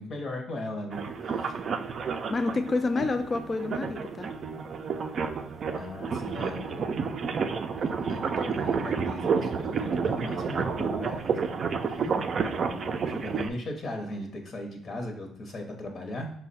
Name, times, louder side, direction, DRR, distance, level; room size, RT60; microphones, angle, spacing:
voice 1, 0.0-1.5 5.6-7.4 7.7-11.5 11.8-16.3, left 1 dB, 50° left, 2 dB, 0.8 m, -38 dB
sound 1, 0.9-13.5, right 5 dB, 50° right, 0.3 m, -30 dB
voice 2, 2.3-4.3 12.0-12.4, left 3 dB, 35° left, 8 dB, 0.3 m, -29 dB
4.7 x 2.1 x 4.1 m, 0.68 s
cardioid pair, 85°, 0 cm